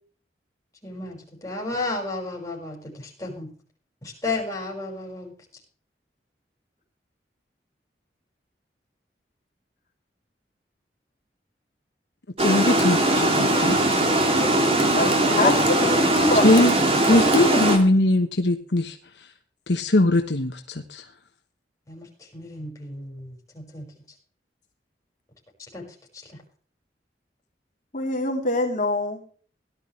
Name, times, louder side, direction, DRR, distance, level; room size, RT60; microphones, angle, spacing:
voice 1, 0.8-3.5 4.0-5.3 15.4-15.5 16.2-16.5 17.1-17.3 21.9-22.1 22.3-23.9 25.7-25.8 26.2-26.4, left 1 dB, 20° left, -1 dB, 5.8 m, -31 dB
voice 2, 12.4-13.8 16.4-16.7 17.1-19.3 19.7-21.0, left 1 dB, 75° left, 5 dB, 1.2 m, -21 dB
Water, 12.4-17.8, right 1 dB, 35° right, 2.8 m, -20 dB
voice 3, 14.9-16.0 16.3-16.6 27.9-29.3, left 2 dB, 45° left, 1 dB, 3.4 m, -25 dB
17.5 x 11.5 x 3.3 m, 0.43 s
head